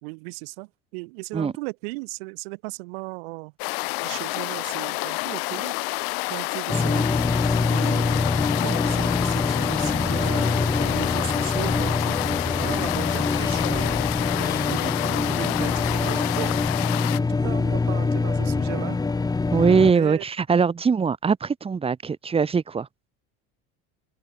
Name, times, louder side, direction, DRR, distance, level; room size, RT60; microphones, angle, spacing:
voice 1, 0.0-3.5 4.0-5.8 6.3-7.1 7.7-8.3 8.6-14.0 14.3-16.6 17.4-19.0 19.9-20.2, right 28 dB, 85° right, 4.6 m, -36 dB
sound 1, 3.6-17.2, left 37 dB, 80° left, 1.0 m, -29 dB
sound 2, 6.7-19.9, left 3 dB, 15° left, 3.3 m, -24 dB
voice 2, 19.5-22.9, right 5 dB, 20° right, 2.2 m, -22 dB
cardioid pair, 135°, 29 cm